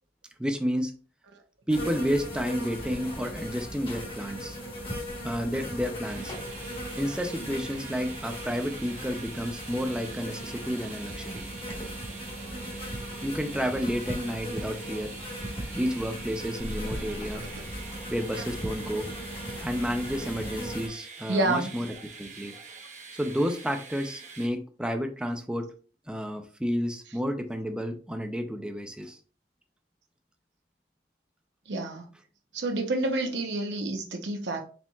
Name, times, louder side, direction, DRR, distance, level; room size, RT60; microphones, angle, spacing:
voice 1, 0.4-0.9 1.7-4.6 5.2-6.3 7.0-11.5 13.2-15.1 15.7-17.4 18.1-19.1 19.6-21.9 22.2-22.6 23.1-25.7 26.1-29.2, equal, 5° right, 0.4 m, -31 dB
sound 1, 1.7-20.9, equal, 30° left, 1.2 m, -38 dB
sound 2, 6.0-24.5, right 4 dB, 40° right, 0.8 m, -45 dB
sound 3, 16.6-19.0, left 1 dB, 80° left, 1.1 m, -42 dB
voice 2, 21.3-21.7 31.7-32.1 32.5-34.6, right 2 dB, 75° right, 0.7 m, -29 dB
4.3 x 4.1 x 2.3 m
head